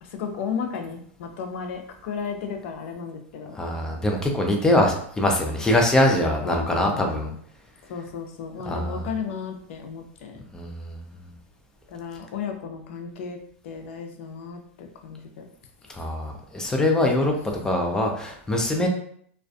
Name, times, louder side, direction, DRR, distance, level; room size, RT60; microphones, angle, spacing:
voice 1, 0.0-3.6 6.4-7.4 7.9-10.4 11.9-13.4 13.6-15.5 16.6-16.7, left 6 dB, 65° left, 4 dB, 0.5 m, -34 dB
voice 2, 3.5-7.3 8.7-9.0 10.5-11.0 16.0-17.3 17.6-18.9, left 1 dB, 10° left, 1 dB, 0.5 m, -23 dB
2.4 x 2.3 x 2.3 m, 0.63 s
hypercardioid pair, 125°, 7 cm